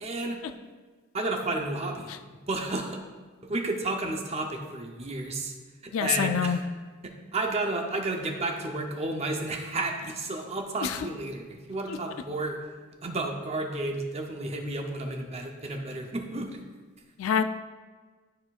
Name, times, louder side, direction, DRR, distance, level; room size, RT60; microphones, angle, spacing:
voice 1, 0.0-0.4 1.1-2.1 2.5-3.0 3.4-5.5 5.8-6.6 7.0-12.6 13.0-16.6, right 2 dB, 30° right, 2 dB, 0.6 m, -32 dB
voice 2, 5.9-6.6 10.8-11.0 11.9-12.0 17.2-17.4, left 7 dB, 75° left, 9 dB, 0.3 m, -26 dB
12.0 x 4.4 x 2.4 m, 1.4 s
head